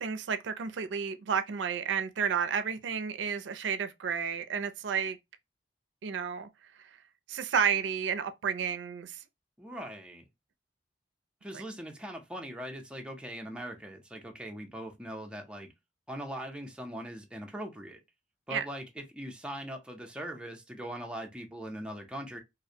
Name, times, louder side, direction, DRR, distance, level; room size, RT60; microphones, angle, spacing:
voice 1, 0.0-5.2 6.0-6.5 7.3-9.2 18.5-18.7, right 7 dB, 90° right, 0.4 m, -31 dB
voice 2, 9.6-10.2 11.4-15.7 16.1-18.0 18.5-22.4, equal, 5° right, 0.4 m, -41 dB
2.4 x 2.1 x 2.6 m
head